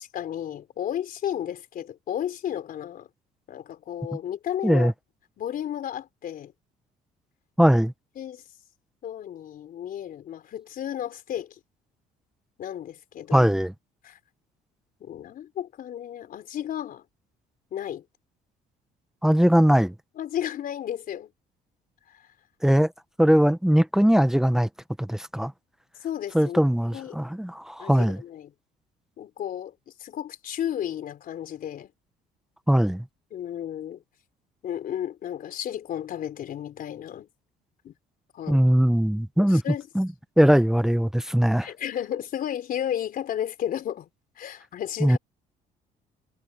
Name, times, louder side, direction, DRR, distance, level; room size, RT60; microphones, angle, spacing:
voice 1, 0.1-3.1 3.5-4.9 5.4-6.5 8.2-8.4 9.0-11.5 12.6-13.5 14.0-14.2 15.0-17.0 17.7-18.0 20.2-21.3 26.0-26.6 26.9-27.2 27.8-28.5 29.2-29.7 30.0-31.9 33.3-34.0 34.6-37.3 37.8-37.9 38.3-38.6 39.5-39.9 41.6-44.1 44.4-45.2, left 10 dB, 60° left, 4.1 m, -33 dB
voice 2, 7.6-7.9 13.3-13.7 19.2-19.9 22.6-22.9 23.2-24.7 25.0-25.5 26.3-28.2 32.7-33.0 38.5-39.6 39.9-40.1 40.4-41.7 45.0-45.2, equal, 5° right, 1.0 m, -20 dB
cardioid pair, 110°, 17 cm